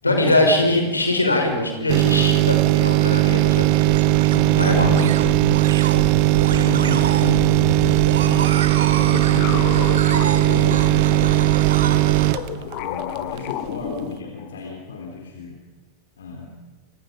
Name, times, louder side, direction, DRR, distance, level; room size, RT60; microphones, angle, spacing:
voice 1, 0.0-4.1 4.6-5.1, left 1 dB, 80° left, 3 dB, 5.7 m, -22 dB
sound 1, 1.9-13.5 13.9-14.0, right 20 dB, 45° right, 0.9 m, -18 dB
sound 2, 2.9-12.4, right 6 dB, 65° right, 2.8 m, -27 dB
voice 2, 4.3-5.5 6.5-12.1 12.5-15.6 16.2-16.5, left 4 dB, 65° left, 2 dB, 3.9 m, -33 dB
sound 3, 8.5-11.3 11.9-14.6, left 13 dB, 45° left, 1.5 m, -32 dB
29.0 x 27.0 x 5.3 m, 1.2 s
figure-of-eight pair, 90°, 0 cm